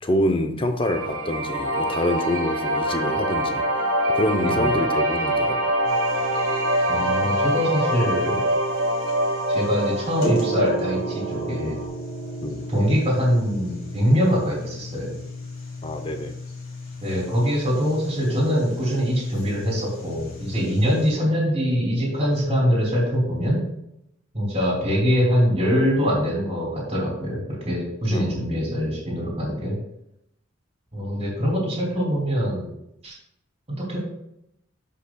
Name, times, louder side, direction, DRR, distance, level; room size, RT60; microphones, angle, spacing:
voice 1, 0.0-3.6 4.1-5.7 12.4-12.6 15.8-16.3 28.1-28.4, left 1 dB, 25° left, 7 dB, 0.7 m, -26 dB
sound 1, 0.8-11.9, right 1 dB, 75° right, 1.3 m, -25 dB
sound 2, 5.8-21.1, right 1 dB, 45° left, 2.9 m, -35 dB
voice 2, 6.9-8.4 9.5-11.8 12.7-15.1 17.0-23.6 24.3-29.8 30.9-32.7 33.0-33.1 33.7-34.0, equal, 30° right, -3 dB, 2.9 m, -23 dB
12.0 x 5.6 x 2.3 m, 0.80 s
head